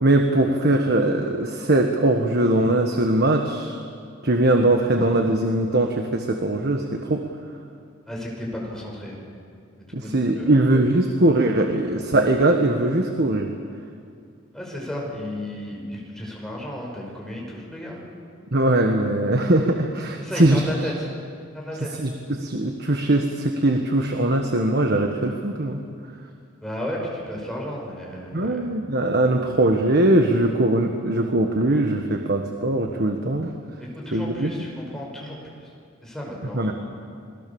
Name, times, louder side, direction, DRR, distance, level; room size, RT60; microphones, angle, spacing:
voice 1, 0.0-3.8 4.2-7.2 9.9-13.5 18.5-20.6 22.0-25.8 28.3-33.5 34.1-34.5 36.5-36.7, right 1 dB, 50° right, 4 dB, 1.5 m, -21 dB
voice 2, 8.1-9.2 10.0-10.6 14.5-18.0 20.2-21.1 21.5-22.0 26.6-28.6 33.8-35.4 36.0-36.7, equal, ahead, -2 dB, 5.7 m, -33 dB
27.5 x 21.0 x 7.1 m, 2.4 s
head